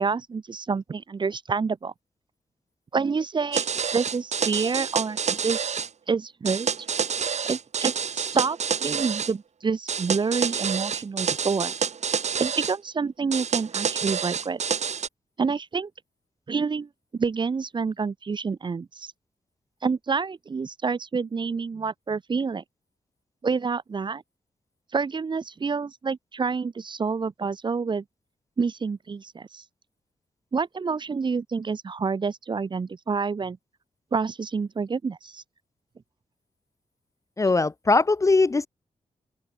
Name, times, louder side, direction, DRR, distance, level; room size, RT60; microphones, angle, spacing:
voice 1, 0.0-1.9 2.9-3.7 3.9-5.8 6.1-6.7 7.4-11.7 12.4-14.6 15.4-15.9 16.5-19.1 19.8-22.6 23.4-24.2 24.9-28.0 28.6-29.6 30.5-33.6 34.1-35.4, right 5 dB, 40° right, 0.5 m, -28 dB
sound 1, 3.5-5.9 6.5-9.3 9.9-12.8 13.3-15.1, right 6 dB, 65° right, 1.4 m, -28 dB
voice 2, 37.4-38.7, left 3 dB, 25° left, 0.4 m, -20 dB
open air
cardioid pair, 75°, 12 cm